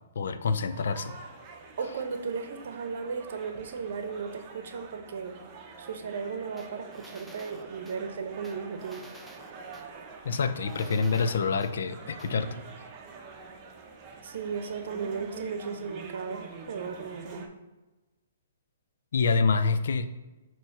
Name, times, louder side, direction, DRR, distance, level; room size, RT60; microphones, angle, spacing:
voice 1, 0.2-1.1 10.2-12.5 19.1-20.1, left 4 dB, 70° left, 10 dB, 0.5 m, -26 dB
sound 1, 0.7-17.5, right 4 dB, 30° right, 0.8 m, -46 dB
voice 2, 1.8-5.4 5.8-9.0 14.2-17.5, right 5 dB, 65° right, 7 dB, 0.8 m, -35 dB
sound 2, 6.6-8.0 8.4-9.9 10.3-11.7 12.2-12.3, right 1 dB, ahead, 0.5 m, -52 dB
6.2 x 3.1 x 5.4 m, 1.1 s
hypercardioid pair, 135°, 0 cm